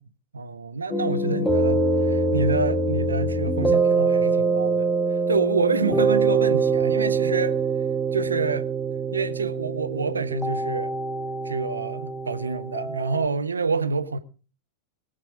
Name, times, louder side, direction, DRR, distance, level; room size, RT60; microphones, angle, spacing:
voice 1, 0.3-4.9 5.3-7.6 8.1-8.7 9.1-11.0 11.4-14.2, right 4 dB, 75° right, 1.3 m, -27 dB
sound 1, 0.9-13.2, right 3 dB, 5° left, 1.8 m, -24 dB
22.0 x 8.3 x 5.1 m
figure-of-eight pair, 90°, 0 cm